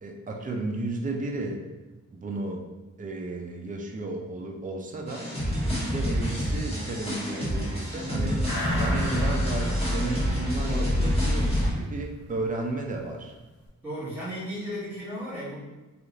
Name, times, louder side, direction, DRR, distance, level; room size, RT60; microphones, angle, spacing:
voice 1, 0.0-1.6 2.1-2.6 3.0-5.3 5.7-8.5 8.8-13.3, right 2 dB, 25° right, 1 dB, 0.4 m, -33 dB
sound 1, 5.1-11.7, equal, 20° left, 1.2 m, -27 dB
sound 2, 8.5-11.4 11.7-11.8, left 1 dB, 75° left, 0.7 m, -33 dB
voice 2, 9.1-9.4 10.6-10.9 13.8-15.6, equal, 5° right, -10 dB, 1.4 m, -35 dB
3.0 x 2.5 x 2.5 m, 1.1 s
cardioid pair, 65°, 33 cm